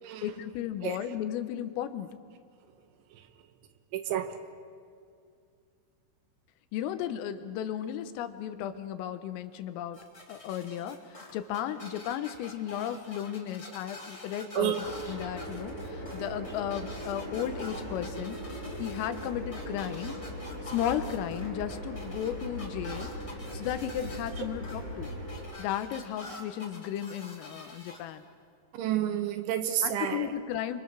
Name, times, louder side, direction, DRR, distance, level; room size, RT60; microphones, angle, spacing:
voice 1, 0.2-2.1 6.7-10.0 10.3-20.2 20.6-25.1 25.6-28.3 29.8-30.8, left 10 dB, 85° left, 9 dB, 3.7 m, -35 dB
voice 2, 3.9-4.4 14.6-14.8 28.7-30.3, right 11 dB, 75° right, 8 dB, 3.3 m, -30 dB
sound 1, 9.9-28.0, left 2 dB, 10° left, 2.8 m, -46 dB
sound 2, 14.8-25.4, equal, 35° right, 7.0 m, -39 dB
29.5 x 25.0 x 6.7 m, 2.3 s
omnidirectional pair, 5.8 m